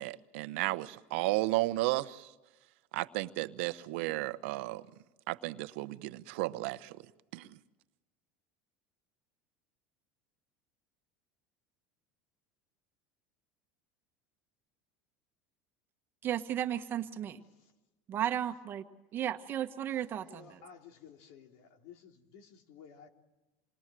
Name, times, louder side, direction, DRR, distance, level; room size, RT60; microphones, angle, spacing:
voice 1, 0.0-2.3 2.9-4.8 5.3-7.0 7.3-7.6, right 19 dB, 75° right, 1.0 m, -33 dB
voice 2, 16.2-17.4 18.1-18.8 19.1-20.6, right 10 dB, 35° right, 1.4 m, -34 dB
voice 3, 20.3-23.1, left 7 dB, 65° left, 3.2 m, -54 dB
28.0 x 22.5 x 7.7 m
supercardioid pair, 145°, 6 cm